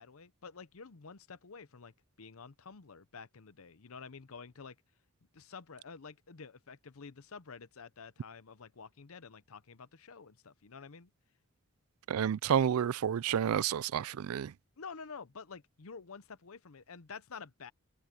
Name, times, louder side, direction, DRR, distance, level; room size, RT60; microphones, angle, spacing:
voice 1, 0.0-4.8 5.3-11.1 14.8-17.7, left 5 dB, 80° left, 0.8 m, -49 dB
voice 2, 12.1-14.5, right 8 dB, 85° right, 0.4 m, -30 dB
head